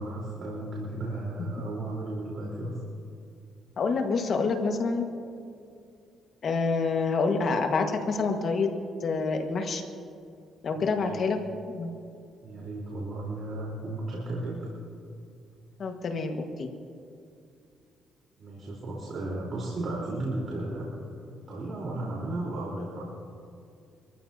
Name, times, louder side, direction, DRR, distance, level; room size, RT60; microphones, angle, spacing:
voice 1, 0.0-2.8 10.7-11.1 12.4-14.7 18.4-21.1 21.5-23.1, right 2 dB, 50° right, -4 dB, 4.0 m, -34 dB
voice 2, 3.8-5.0 6.4-8.7 9.0-9.8 10.6-11.4 11.6-11.9 15.8-16.7, left 4 dB, 55° left, 4 dB, 1.6 m, -27 dB
26.0 x 14.5 x 2.9 m, 2.4 s
cardioid pair, 90°, 0 cm